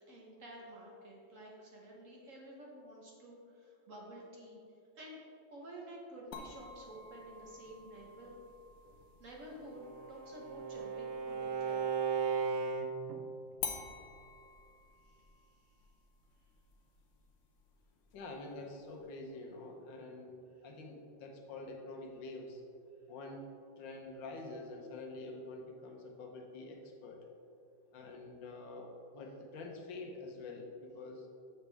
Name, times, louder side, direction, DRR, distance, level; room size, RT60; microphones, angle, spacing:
voice 1, 0.1-4.6 5.0-5.3 5.5-8.4 9.2-12.0 15.0-15.2 20.6-20.7, right 1 dB, 50° right, -2 dB, 1.2 m, -51 dB
sound 1, 6.3-11.9 13.6-18.6, left 6 dB, 60° left, 0.8 m, -49 dB
Bowed string instrument, 9.6-13.2, right 5 dB, 80° right, 0.7 m, -36 dB
voice 2, 18.1-22.6 23.1-23.5 23.8-27.2 27.9-31.3, left 2 dB, 80° left, 2 dB, 1.6 m, -47 dB
7.2 x 6.5 x 3.4 m, 2.5 s
omnidirectional pair, 2.0 m